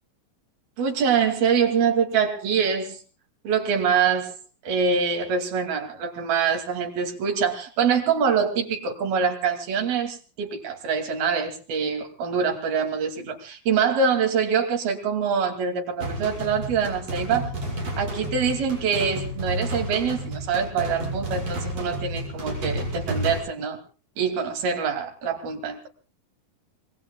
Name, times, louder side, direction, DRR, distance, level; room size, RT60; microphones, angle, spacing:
voice 1, 0.8-3.0 3.4-4.4 4.6-17.5 18.0-23.8 24.2-25.9, right 6 dB, 80° right, 4 dB, 4.5 m, -24 dB
sound 1, 16.0-23.4, right 1 dB, 45° right, 8.1 m, -31 dB
26.0 x 22.0 x 2.3 m, 0.34 s
omnidirectional pair, 4.2 m